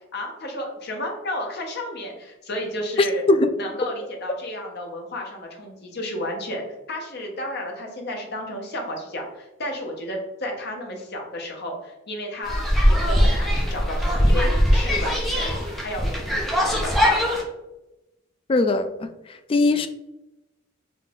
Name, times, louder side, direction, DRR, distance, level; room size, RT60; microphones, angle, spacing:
voice 1, 0.1-3.2 3.6-17.4, left 1 dB, 55° left, 1 dB, 1.0 m, -32 dB
sound 1, 12.4-17.4, equal, ahead, 0.8 m, -21 dB
voice 2, 18.5-19.9, left 2 dB, 25° left, 9 dB, 0.3 m, -21 dB
4.0 x 3.2 x 3.7 m, 0.98 s
head